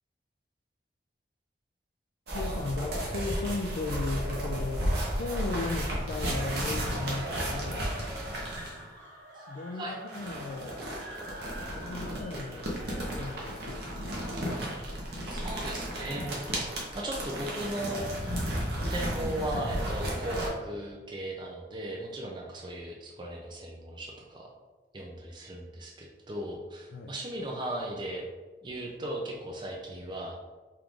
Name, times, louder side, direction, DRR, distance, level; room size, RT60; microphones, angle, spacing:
voice 1, 2.3-7.9 9.5-10.8 11.7-12.7 13.1-14.1 26.9-27.2, left 3 dB, 60° left, 2 dB, 0.3 m, -36 dB
sound 1, 2.3-8.8 10.1-20.5, right 1 dB, 60° right, 1.0 m, -33 dB
sound 2, 5.1-18.2, equal, 85° right, 1.5 m, -48 dB
voice 2, 15.3-16.4 16.9-18.0 18.8-24.5 24.9-28.3 28.6-30.4, right 1 dB, 25° right, -1 dB, 0.4 m, -37 dB
4.5 x 2.5 x 3.6 m, 1.2 s
head